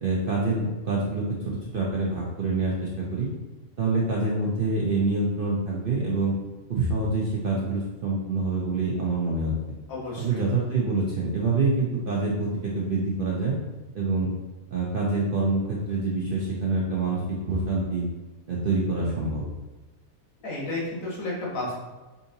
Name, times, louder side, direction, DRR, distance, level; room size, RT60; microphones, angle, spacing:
voice 1, 0.0-3.3 3.8-6.3 6.7-9.5 10.2-13.6 13.9-14.3 14.7-18.1 18.5-19.4, right 3 dB, 60° right, -4 dB, 0.6 m, -26 dB
voice 2, 9.9-10.5 20.4-21.8, left 2 dB, 75° left, -5 dB, 1.6 m, -32 dB
4.7 x 2.6 x 2.7 m, 1.2 s
omnidirectional pair, 1.5 m